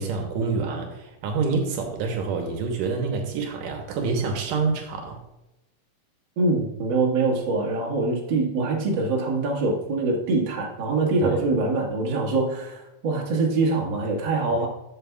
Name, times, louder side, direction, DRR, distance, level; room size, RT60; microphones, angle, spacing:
voice 1, 0.0-5.2 11.2-11.4 14.5-14.6, right 4 dB, 75° right, 3 dB, 2.5 m, -27 dB
voice 2, 6.4-14.7, right 3 dB, 45° right, -2 dB, 1.7 m, -24 dB
11.5 x 7.7 x 2.3 m, 0.94 s
omnidirectional pair, 4.0 m